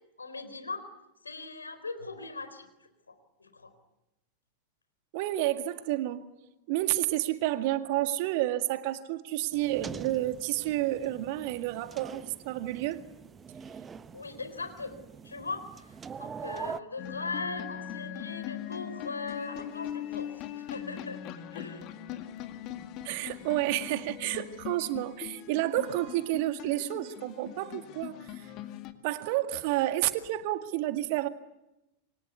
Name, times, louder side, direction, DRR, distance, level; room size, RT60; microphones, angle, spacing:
voice 1, 0.2-0.8 1.2-3.7 14.1-21.2 21.5-21.9, left 3 dB, 75° left, 9 dB, 4.2 m, -40 dB
voice 2, 5.1-6.3 6.7-13.0 23.0-28.5 29.0-31.3, right 15 dB, 50° right, 9 dB, 1.9 m, -30 dB
sound 1, 9.5-16.8, right 6 dB, 20° right, 1.0 m, -44 dB
sound 2, 17.0-28.9, left 11 dB, 40° left, 2.1 m, -41 dB
28.0 x 24.5 x 8.3 m, 0.95 s
figure-of-eight pair, 90°, 0 cm